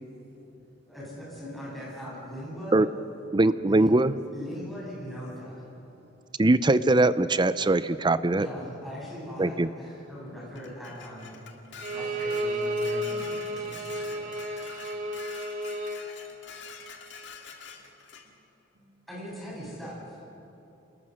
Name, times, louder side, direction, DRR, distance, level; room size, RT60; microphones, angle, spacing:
voice 1, 0.0-0.9 5.3-6.3 10.3-10.5 11.6-11.9 12.7-15.3 16.3-17.0 18.2-19.1, equal, 60° right, 2.8 m, -64 dB
voice 2, 0.8-2.8 3.7-3.9 4.3-5.6 8.4-11.4 11.9-14.3 19.1-20.2, equal, ahead, 7.9 m, -40 dB
voice 3, 3.3-4.1 6.4-8.5 9.4-9.7, right 2 dB, 25° right, 0.5 m, -21 dB
Dishes pots and pans, 10.6-18.3, left 6 dB, 70° left, 2.2 m, -46 dB
Bowed string instrument, 11.8-16.0, right 1 dB, 45° right, 2.2 m, -32 dB
28.0 x 20.0 x 6.4 m
head